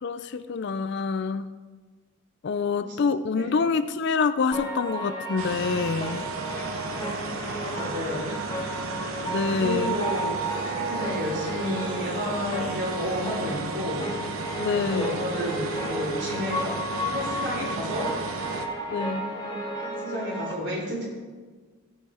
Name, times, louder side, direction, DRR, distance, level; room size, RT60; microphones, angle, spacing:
voice 1, 0.0-1.5 2.4-6.2 9.2-9.9 14.6-15.3 18.9-19.2, left 5 dB, 50° left, 12 dB, 0.4 m, -26 dB
voice 2, 2.5-3.0 3.3-3.5 7.5-8.4 8.8-8.9 9.4-14.2 14.7-18.3 19.8-21.0, left 1 dB, 50° right, -3 dB, 3.3 m, -32 dB
sound 1, 4.5-20.5, right 1 dB, 20° left, 1.3 m, -33 dB
sound 2, 5.4-18.7, right 3 dB, 70° right, 0.8 m, -34 dB
16.5 x 5.7 x 4.3 m, 1.4 s
head